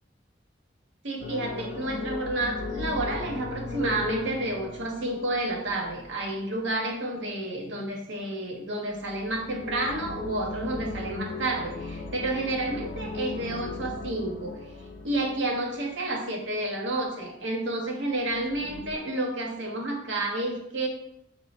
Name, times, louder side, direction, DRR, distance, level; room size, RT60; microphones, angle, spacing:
voice 1, 1.0-14.6 15.0-20.9, right 2 dB, 70° right, 0 dB, 0.9 m, -30 dB
sound 1, 1.2-6.6 8.9-16.3 18.2-19.0, left 3 dB, 70° left, 0.4 m, -38 dB
4.4 x 2.1 x 4.1 m, 0.77 s
head